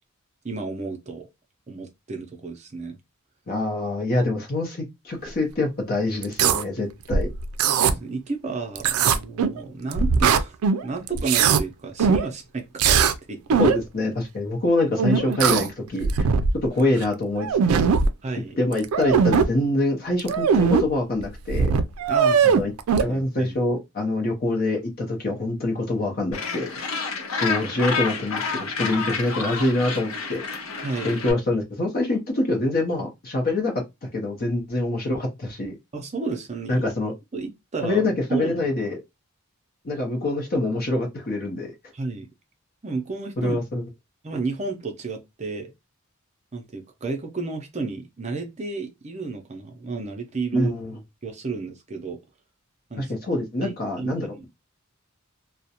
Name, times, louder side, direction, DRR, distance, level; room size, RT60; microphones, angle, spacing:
voice 1, 0.4-1.3 1.7-3.0 7.7-10.6 10.8-13.0 13.3-13.6 18.2-18.6 22.1-22.7 22.9-23.5 30.8-31.2 35.9-36.9 37.3-38.5 41.9-42.3 42.8-43.6 44.2-45.7 46.5-50.7 51.2-52.2 52.9-53.1 53.6-54.5, right 4 dB, 30° right, 0.5 m, -32 dB
voice 2, 3.5-7.3 13.6-16.3 16.6-17.8 18.6-21.7 22.4-22.7 23.0-26.7 27.4-30.4 31.0-33.7 34.1-35.8 36.7-37.1 37.8-39.0 39.8-41.7 43.4-43.8 50.5-51.0 53.0-54.5, left 2 dB, 45° left, 0.6 m, -25 dB
sound 1, 6.2-6.6 7.1-7.9 8.8-9.6 9.9-10.8 11.1-11.6 12.0-12.3 12.8-13.2 13.5-13.8 15.0-15.7 16.0-16.6 17.0-17.1 17.4-18.1 18.7-19.5 20.2-20.8 21.2-21.3 21.5-23.0, right 6 dB, 90° right, 0.3 m, -20 dB
Gull seagull, 26.3-31.3, left 4 dB, 80° left, 0.8 m, -29 dB
2.4 x 2.1 x 2.8 m
head